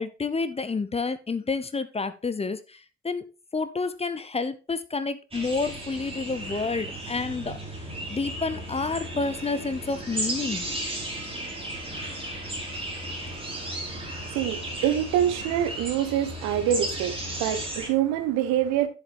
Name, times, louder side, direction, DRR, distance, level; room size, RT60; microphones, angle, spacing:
voice 1, 0.0-3.2 3.5-7.6 8.1-10.6, left 4 dB, 20° left, 0.8 m, -29 dB
sound 1, 5.3-17.9, right 1 dB, 20° right, 4.3 m, -35 dB
voice 2, 13.1-18.9, right 10 dB, 65° right, 1.1 m, -26 dB
10.5 x 7.1 x 3.5 m
figure-of-eight pair, 40°, 30 cm